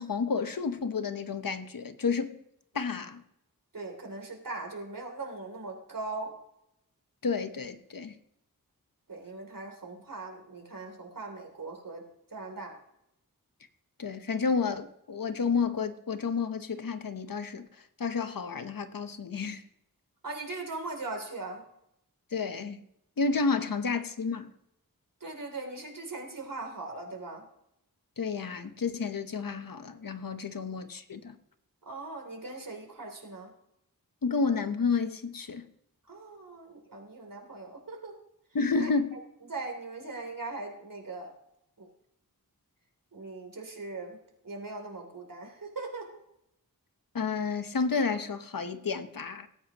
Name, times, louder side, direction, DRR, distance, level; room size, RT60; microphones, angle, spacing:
voice 1, 0.0-2.4 2.7-3.2 7.2-8.1 14.0-17.7 18.0-19.6 22.3-22.8 23.2-24.5 28.2-31.3 34.2-35.7 38.5-39.2 47.1-49.5, left 5 dB, 70° left, 1.0 m, -30 dB
voice 2, 3.7-6.3 9.1-12.0 12.3-12.8 20.2-21.6 25.2-27.5 31.8-33.5 36.1-38.2 38.7-39.2 39.5-41.3 41.8-41.9 43.1-46.1, right 3 dB, 65° right, 3.0 m, -40 dB
18.5 x 9.1 x 3.0 m
wide cardioid pair, 75°, 35 cm